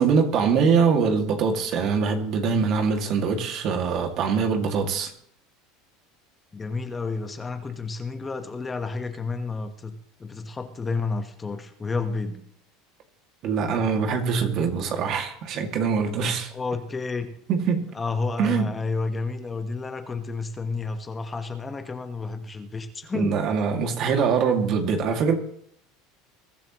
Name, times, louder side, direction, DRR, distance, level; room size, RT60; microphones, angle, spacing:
voice 1, 0.0-5.1 13.4-16.5 17.5-17.9 18.4-18.7 23.1-25.3, right 5 dB, 50° right, 2.4 m, -23 dB
voice 2, 6.5-12.4 16.5-17.3 17.9-23.4, left 4 dB, 20° left, 1.4 m, -31 dB
22.0 x 12.0 x 3.2 m
supercardioid pair, 105°, 0 cm